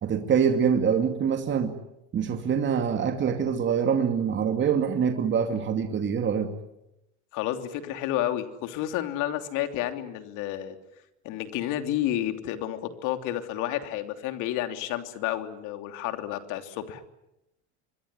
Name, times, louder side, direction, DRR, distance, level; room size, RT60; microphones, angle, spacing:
voice 1, 0.0-1.8 2.1-6.5, right 7 dB, 35° right, 6 dB, 2.5 m, -25 dB
voice 2, 7.3-10.7 11.2-17.0, left 12 dB, 60° left, 7 dB, 3.3 m, -30 dB
26.0 x 21.0 x 9.9 m, 0.90 s
supercardioid pair, 110°, 34 cm